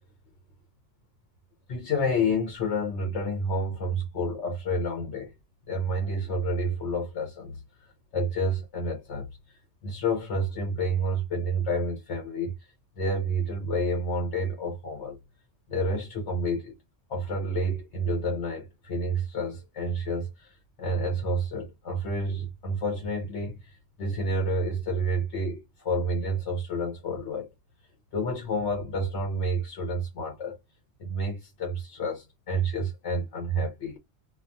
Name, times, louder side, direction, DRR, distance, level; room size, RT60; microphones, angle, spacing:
voice 1, 1.7-5.3 5.7-12.6 13.0-15.2 15.7-16.7 17.1-27.5 28.1-30.6 31.0-34.0, equal, 85° left, 1.1 m, -29 dB
2.5 x 2.3 x 2.5 m
omnidirectional pair, 1.1 m